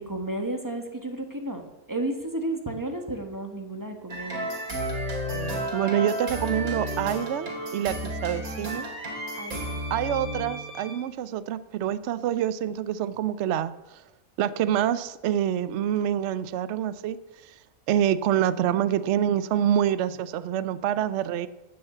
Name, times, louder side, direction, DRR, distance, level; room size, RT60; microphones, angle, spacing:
voice 1, 0.0-4.5 9.3-9.8, right 1 dB, 15° right, 5 dB, 1.5 m, -33 dB
sound 1, 4.1-11.0, equal, 90° right, 2.9 m, -32 dB
voice 2, 5.7-8.8 9.9-14.0 14.4-17.2 17.4-17.5 17.9-21.5, right 10 dB, 65° right, 15 dB, 0.8 m, -26 dB
13.5 x 6.5 x 8.2 m, 1.0 s
omnidirectional pair, 1.5 m